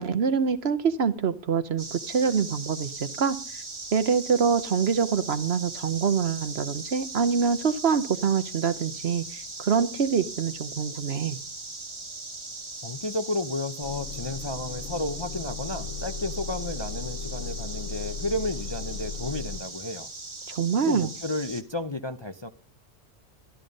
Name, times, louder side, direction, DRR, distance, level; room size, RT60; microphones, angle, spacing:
voice 1, 0.0-3.4 3.9-11.4 20.5-21.1, right 6 dB, 55° right, 12 dB, 1.1 m, -25 dB
sound 1, 1.8-21.6, right 3 dB, 25° right, 1.3 m, -39 dB
voice 2, 12.8-20.1 20.8-22.5, left 2 dB, 25° left, 8 dB, 0.7 m, -32 dB
Motor vehicle (road) / Engine starting / Idling, 13.8-19.6, left 4 dB, 70° left, 1.8 m, -36 dB
13.0 x 13.0 x 5.3 m, 0.37 s
omnidirectional pair, 1.3 m